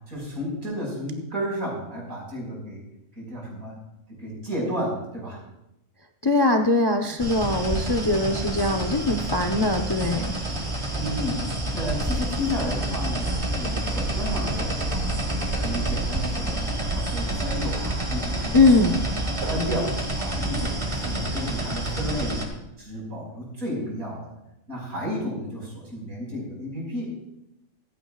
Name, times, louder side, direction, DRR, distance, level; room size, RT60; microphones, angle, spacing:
voice 1, 0.1-2.8 3.2-3.7 4.2-5.4 10.9-15.3 15.6-16.6 16.9-18.9 19.5-19.9 20.2-22.5 22.8-24.4 24.7-27.1, equal, 75° right, -3 dB, 5.4 m, -32 dB
voice 2, 6.2-10.3 18.5-18.9, left 2 dB, 30° left, 5 dB, 0.5 m, -21 dB
sound 1, 7.2-22.5, right 1 dB, 20° right, 1.6 m, -28 dB
24.5 x 8.9 x 2.4 m, 0.87 s
omnidirectional pair, 1.5 m